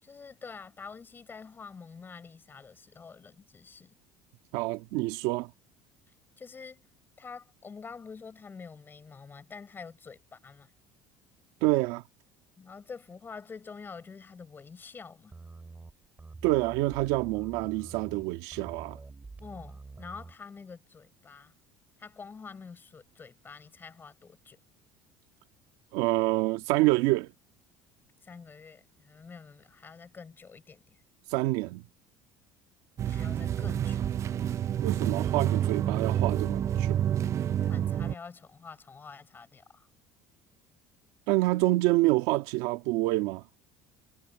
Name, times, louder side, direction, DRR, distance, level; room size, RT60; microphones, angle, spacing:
voice 1, 0.0-3.9 6.4-6.8 7.2-10.7 12.6-15.3 19.4-21.5 22.0-24.6 28.2-31.0 33.1-34.1 37.6-39.9, left 5 dB, 25° left, 6.9 m, -47 dB
voice 2, 4.5-5.5 11.6-12.0 16.4-19.0 25.9-27.3 31.3-31.8 34.8-37.0 41.3-43.4, right 20 dB, 80° right, 1.8 m, -27 dB
sound 1, 15.3-20.4, right 3 dB, 15° right, 4.0 m, -47 dB
sound 2, 33.0-38.1, right 10 dB, 35° right, 0.4 m, -28 dB
cardioid pair, 125°, 9 cm